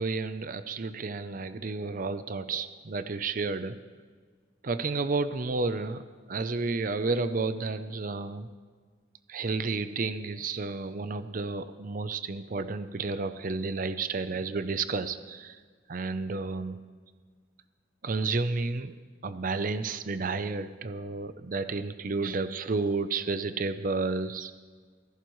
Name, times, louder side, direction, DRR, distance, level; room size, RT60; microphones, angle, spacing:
voice 1, 0.0-3.8 4.6-6.0 6.3-8.5 9.3-15.6 15.9-16.8 18.0-18.9 19.2-24.5, right 3 dB, 50° right, 11 dB, 0.6 m, -31 dB
26.0 x 11.5 x 3.1 m, 1.5 s
head